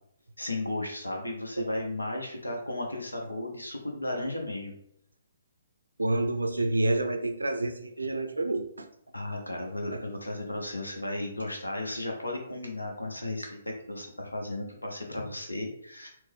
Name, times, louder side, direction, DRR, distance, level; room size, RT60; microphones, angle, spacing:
voice 1, 0.4-4.7 6.5-6.6 9.1-16.1, left 1 dB, 85° left, 1 dB, 0.7 m, -35 dB
voice 2, 6.0-8.9 9.9-10.0, right 2 dB, 80° right, 7 dB, 0.5 m, -28 dB
4.4 x 2.0 x 3.5 m, 0.72 s
figure-of-eight pair, 130°, 0 cm